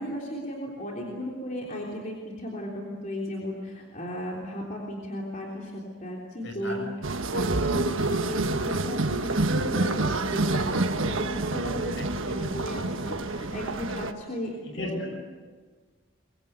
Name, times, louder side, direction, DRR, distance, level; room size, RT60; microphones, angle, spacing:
voice 1, 0.0-6.9 7.3-15.0, left 1 dB, 40° left, -2 dB, 3.5 m, -35 dB
voice 2, 6.4-6.9 12.0-12.1 13.8-14.0 14.6-15.1, left 1 dB, 65° left, 4 dB, 6.4 m, -37 dB
sound 1, 7.0-14.1, right 2 dB, 75° right, 1.4 m, -27 dB
24.0 x 23.5 x 8.2 m, 1.5 s
head